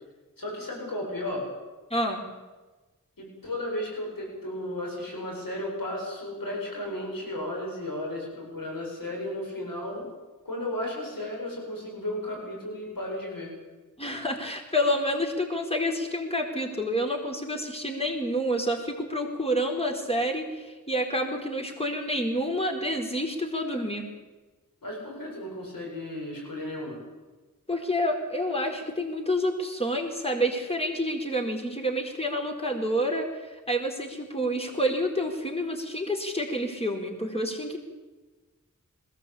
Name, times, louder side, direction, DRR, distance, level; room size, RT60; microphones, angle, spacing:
voice 1, 0.4-1.5 3.2-10.1 10.4-13.5 24.8-27.0, left 1 dB, 80° left, -1 dB, 7.9 m, -34 dB
voice 2, 1.9-2.2 14.0-24.1 27.7-37.8, equal, 20° left, 2 dB, 4.4 m, -28 dB
21.5 x 17.5 x 8.6 m, 1.2 s
cardioid pair, 45°, 33 cm